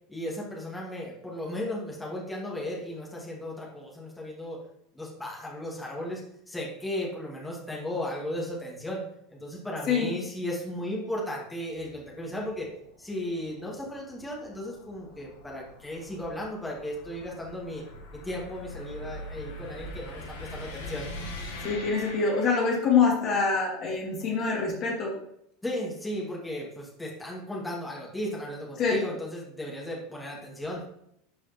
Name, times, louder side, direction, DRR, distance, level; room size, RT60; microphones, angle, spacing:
voice 1, 0.1-4.6 4.9-6.2 6.5-9.0 9.3-12.7 13.0-17.8 18.1-21.1 25.6-30.8, left 1 dB, 5° left, -4 dB, 2.1 m, -35 dB
sound 1, 11.7-23.1, left 1 dB, 65° left, 1.3 m, -43 dB
voice 2, 21.6-25.1 28.8-29.0, left 5 dB, 40° left, -3 dB, 2.4 m, -25 dB
11.5 x 4.7 x 3.0 m, 0.75 s
figure-of-eight pair, 80°, 0 cm